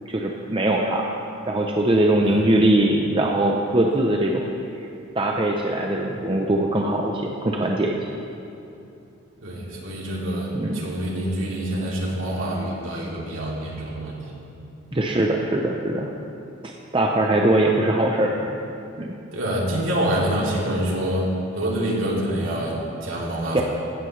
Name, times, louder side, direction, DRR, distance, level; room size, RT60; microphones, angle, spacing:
voice 1, 0.1-1.1 1.5-4.4 5.1-7.9 10.5-10.8 14.9-16.1 16.6-18.6 19.0-19.1 23.5-23.6, right 1 dB, 25° right, 0 dB, 0.6 m, -21 dB
voice 2, 9.4-14.3 19.3-23.6, right 1 dB, 60° right, -4 dB, 2.8 m, -26 dB
16.5 x 13.5 x 3.2 m, 2.7 s
head